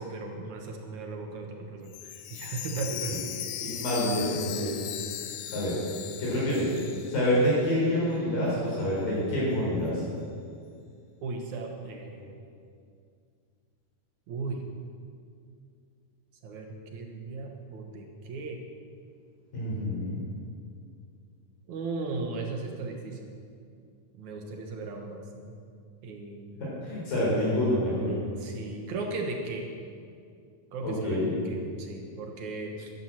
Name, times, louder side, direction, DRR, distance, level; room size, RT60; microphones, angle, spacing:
voice 1, 0.0-3.2 11.2-12.4 14.3-14.6 16.4-18.6 21.7-23.3 24.2-25.5 26.0-26.6 28.4-29.7 30.7-31.2 31.5-32.9, right 3 dB, 65° right, 2 dB, 2.2 m, -36 dB
Chime, 1.9-7.8 8.1-8.2 8.8-8.9, left 10 dB, 90° left, 2.7 m, -38 dB
voice 2, 3.6-4.7 5.5-5.7 6.2-6.7 7.1-10.0 19.5-20.2 26.6-28.1 30.8-31.3, left 1 dB, 65° left, -6 dB, 5.8 m, -27 dB
12.0 x 10.5 x 7.6 m, 2.3 s
omnidirectional pair, 4.3 m